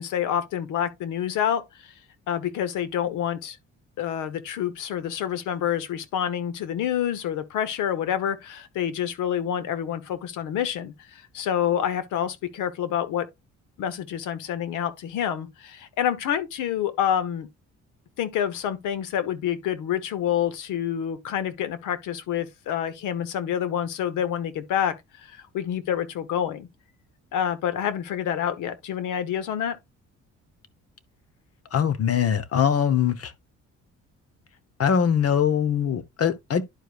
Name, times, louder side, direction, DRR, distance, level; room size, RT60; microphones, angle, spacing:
voice 1, 0.0-1.9 2.3-3.6 4.0-13.3 13.8-17.5 18.2-26.7 27.3-29.8, left 9 dB, 90° left, 1.1 m, -28 dB
voice 2, 31.7-33.3 34.8-36.6, left 8 dB, 50° left, 1.0 m, -22 dB
11.0 x 4.8 x 2.4 m
cardioid pair, 90°, 30 cm